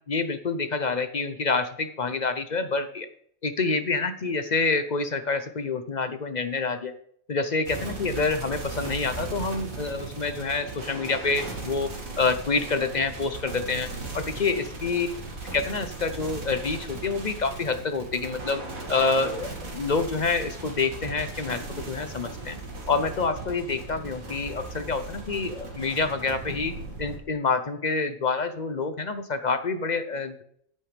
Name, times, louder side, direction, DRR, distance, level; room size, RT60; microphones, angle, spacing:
voice 1, 0.1-3.1 3.4-6.9 7.3-13.9 14.1-15.1 15.5-18.6 18.9-21.6 21.9-22.6 22.9-26.7 27.0-30.4, left 4 dB, 45° left, 10 dB, 0.6 m, -27 dB
sound 1, 7.7-27.2, right 3 dB, 80° right, 2.6 m, -37 dB
9.9 x 9.2 x 3.3 m, 0.64 s
omnidirectional pair, 1.4 m